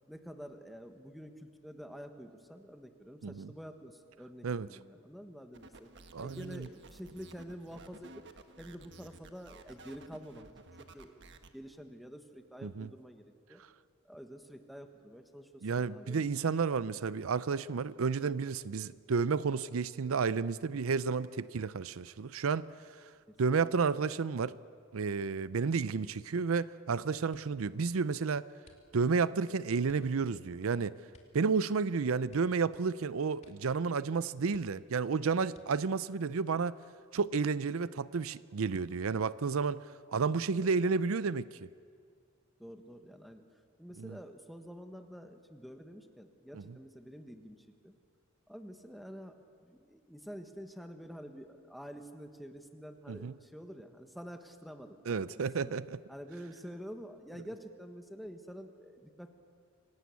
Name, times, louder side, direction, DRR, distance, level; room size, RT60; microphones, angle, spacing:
voice 1, 0.1-5.9 6.2-8.2 8.6-10.4 10.8-11.2 11.5-13.2 13.5-13.6 14.0-16.2 23.3-23.4 40.6-40.8 42.6-43.4 43.8-47.6 47.8-47.9 48.5-55.7 56.1-59.3, equal, ahead, 6 dB, 1.4 m, -48 dB
sound 1, 5.5-11.5, right 3 dB, 60° right, 1.4 m, -54 dB
voice 2, 6.1-6.7 12.6-12.9 15.6-22.7 23.4-24.5 24.9-28.5 28.9-30.9 31.3-36.7 37.1-39.8 40.1-41.7 44.0-44.2 46.5-46.6 53.1-53.3 55.1-56.0, right 5 dB, 90° right, 17 dB, 0.5 m, -31 dB
sound 2, 27.3-27.7 28.6-29.2 29.8-30.2 31.1-31.5 31.7-31.8 32.3-33.0 33.4-33.8 34.1-34.2 34.5-35.0 35.5-36.0 36.7-37.4 37.7-38.1, left 1 dB, 35° left, 2.6 m, -63 dB
26.5 x 18.0 x 8.4 m, 2.2 s
head